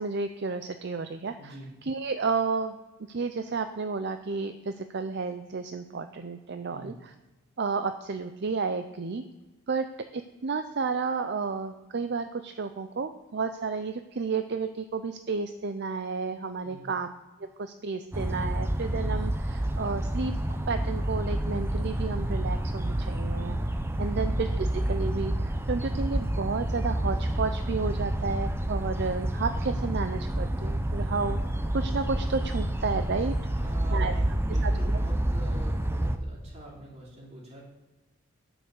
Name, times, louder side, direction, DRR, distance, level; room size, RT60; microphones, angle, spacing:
voice 1, 0.0-2.8 3.1-7.1 7.6-9.2 9.7-9.9 10.1-17.1 17.4-20.3 20.7-23.6 24.0-31.4 31.7-33.3 33.9-34.1 34.5-34.7, right 4 dB, 55° right, 9 dB, 0.5 m, -32 dB
voice 2, 1.4-1.7 6.7-7.0 16.6-16.9 33.5-37.6, right 2 dB, 30° right, -3 dB, 3.1 m, -45 dB
sound 1, 18.1-36.2, right 1 dB, 10° right, 0.6 m, -29 dB
10.5 x 5.9 x 7.1 m, 1.1 s
head